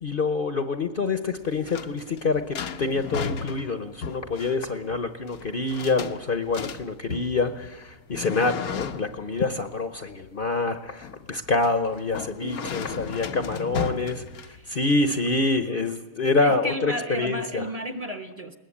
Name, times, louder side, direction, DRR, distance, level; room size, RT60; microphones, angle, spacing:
voice 1, 0.0-14.2 14.7-17.7, left 3 dB, 45° left, 9 dB, 1.0 m, -26 dB
sound 1, 1.3-14.9, left 6 dB, 85° left, 1.5 m, -36 dB
voice 2, 12.4-13.0 13.3-13.4 14.4-14.7 16.4-18.6, equal, 30° right, 8 dB, 1.2 m, -33 dB
21.0 x 19.5 x 8.6 m, 1.1 s
omnidirectional pair, 1.5 m